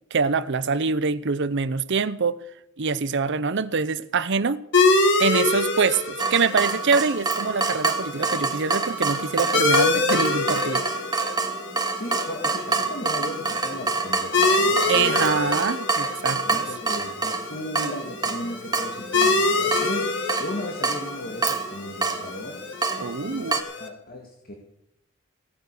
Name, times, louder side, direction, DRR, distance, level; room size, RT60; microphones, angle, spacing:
voice 1, 0.0-2.4 2.8-4.6 5.2-10.8 14.9-16.7 23.0-23.5, right 5 dB, 60° right, 0.7 m, -24 dB
sound 1, 4.7-23.9, left 3 dB, 60° left, 2.0 m, -26 dB
Water tap faucet / Drip, 6.2-23.6, right 4 dB, 20° right, 1.4 m, -27 dB
voice 2, 11.9-15.5 16.5-22.6 23.3-24.5, left 1 dB, 45° left, 2.0 m, -36 dB
17.5 x 9.7 x 6.7 m
head